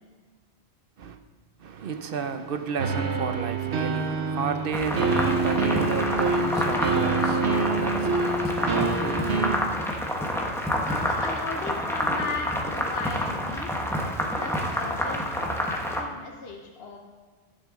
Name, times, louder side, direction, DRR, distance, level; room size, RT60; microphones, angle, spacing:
voice 1, 1.6-9.9, right 6 dB, 60° right, 0.9 m, -33 dB
sound 1, 2.8-9.6, right 3 dB, 75° right, 1.2 m, -26 dB
sound 2, 4.7-16.0, equal, ahead, 1.0 m, -28 dB
voice 2, 10.8-17.0, left 3 dB, 65° left, 1.3 m, -36 dB
19.5 x 6.4 x 3.8 m
omnidirectional pair, 1.1 m